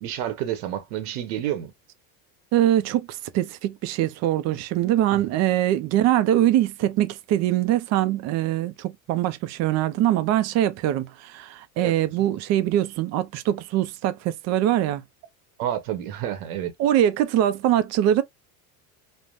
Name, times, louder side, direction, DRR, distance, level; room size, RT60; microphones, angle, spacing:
voice 1, 0.0-1.7 5.1-5.3 11.8-11.9 15.6-16.7, right 11 dB, 90° right, 1.0 m, -29 dB
voice 2, 2.5-15.0 16.8-18.2, right 12 dB, 40° right, 0.4 m, -23 dB
3.4 x 2.1 x 2.4 m
cardioid pair, 145°, 42 cm